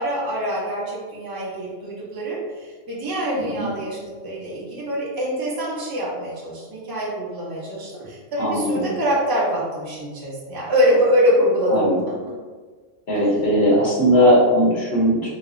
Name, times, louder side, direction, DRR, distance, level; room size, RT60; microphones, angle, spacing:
voice 1, 0.0-11.7 13.1-13.3, equal, 20° right, -6 dB, 0.7 m, -24 dB
voice 2, 8.4-8.8 11.7-12.0 13.1-15.3, equal, 55° left, -6 dB, 1.1 m, -18 dB
3.1 x 2.1 x 3.8 m, 1.5 s
omnidirectional pair, 1.4 m